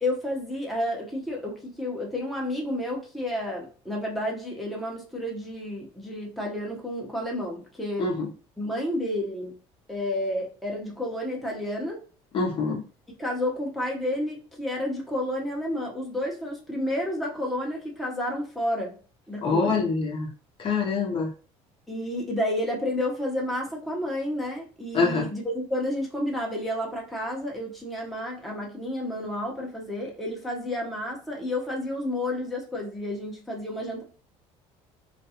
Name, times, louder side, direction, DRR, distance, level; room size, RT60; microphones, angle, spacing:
voice 1, 0.0-8.2 8.6-9.5 9.9-12.0 13.2-18.9 19.3-19.8 21.9-34.0, left 1 dB, ahead, -2 dB, 0.8 m, -30 dB
voice 2, 12.3-12.8 19.4-20.3 20.6-21.3 24.9-25.3, left 4 dB, 40° left, 0 dB, 0.7 m, -25 dB
2.4 x 2.3 x 2.7 m, 0.39 s
supercardioid pair, 110°, 14 cm